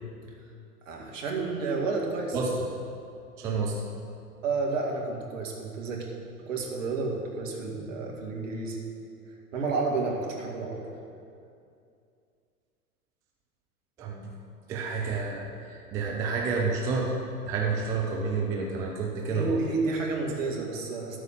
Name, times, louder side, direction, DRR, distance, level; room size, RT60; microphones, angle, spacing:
voice 1, 0.9-2.4 4.4-6.1 6.4-8.8 9.5-10.9 19.3-21.2, right 3 dB, 55° right, 0 dB, 2.2 m, -31 dB
voice 2, 3.4-3.8 14.0-14.3 14.7-17.2 17.4-19.6, right 4 dB, 10° right, -1 dB, 0.4 m, -29 dB
13.0 x 4.8 x 8.6 m, 2.5 s
figure-of-eight pair, 100°, 45 cm